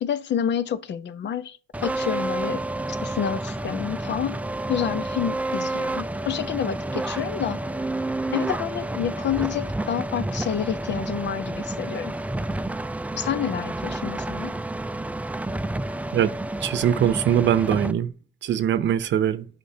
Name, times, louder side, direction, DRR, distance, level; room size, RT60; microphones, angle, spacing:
voice 1, 0.0-2.6 2.9-4.4 4.7-7.6 8.3-12.1 13.1-14.5, left 9 dB, 65° left, 0.8 m, -28 dB
sound 1, 1.7-17.9, right 2 dB, 5° right, 0.4 m, -30 dB
voice 2, 16.6-18.1 18.4-19.5, right 10 dB, 70° right, 0.7 m, -22 dB
10.0 x 5.2 x 2.8 m
cardioid pair, 90°, 20 cm